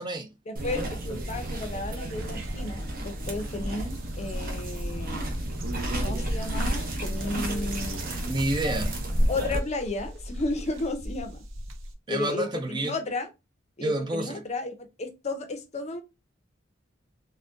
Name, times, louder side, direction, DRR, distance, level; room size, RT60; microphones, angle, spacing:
voice 1, 0.5-5.3 6.0-8.1 9.3-11.4 12.1-13.3 13.8-16.0, left 2 dB, 35° left, 0.6 m, -33 dB
caballo comiendo, 0.6-9.6, right 1 dB, 45° right, 0.8 m, -31 dB
sound 1, 2.1-11.9, equal, 80° right, 0.7 m, -40 dB
voice 2, 8.3-9.0 12.1-13.0 13.8-14.4, right 2 dB, 25° right, 0.4 m, -29 dB
3.5 x 2.1 x 2.5 m
head